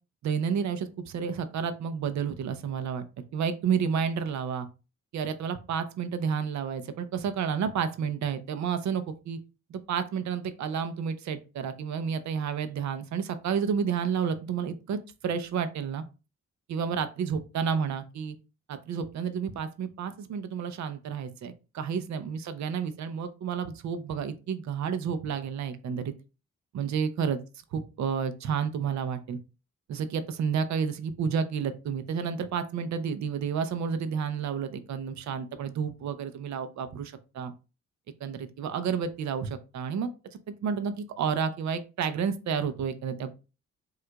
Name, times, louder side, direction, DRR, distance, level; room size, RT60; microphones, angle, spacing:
voice 1, 0.2-3.1 3.3-4.7 5.1-9.4 9.7-16.0 16.7-18.4 18.7-26.1 26.7-27.4 27.7-29.4 29.9-37.5 38.2-40.1 40.6-43.3, right 7 dB, 70° right, 10 dB, 0.6 m, -30 dB
4.5 x 2.4 x 2.3 m, 0.31 s
cardioid pair, 105°, 29 cm